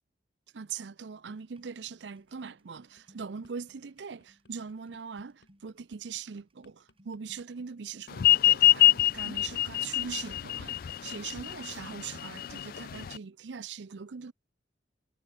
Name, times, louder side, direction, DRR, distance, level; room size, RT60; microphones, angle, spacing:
voice 1, 0.5-14.3, right 6 dB, 90° right, 0.6 m, -41 dB
sound 1, 1.3-11.0, equal, 30° right, 6.6 m, -65 dB
sound 2, 3.0-3.5 4.0-10.2 10.4-10.7, left 2 dB, 70° left, 3.9 m, -64 dB
sound 3, 8.2-13.2, left 15 dB, 55° left, 0.4 m, -24 dB
head